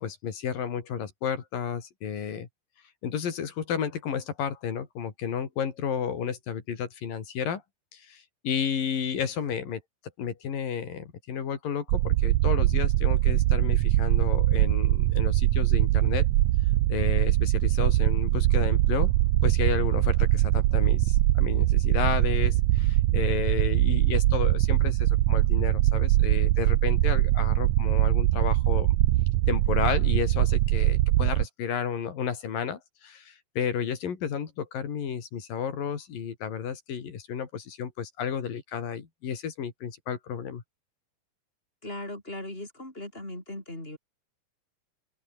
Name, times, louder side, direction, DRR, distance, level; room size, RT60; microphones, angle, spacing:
voice 1, 0.0-2.5 3.0-7.6 7.9-9.8 10.2-16.3 16.9-19.1 19.4-29.0 29.5-40.6, left 7 dB, 65° left, 4.6 m, -32 dB
sound 1, 11.9-31.5, right 16 dB, 85° right, 1.6 m, -22 dB
voice 2, 41.8-44.0, left 1 dB, 15° left, 7.2 m, -38 dB
omnidirectional pair, 4.3 m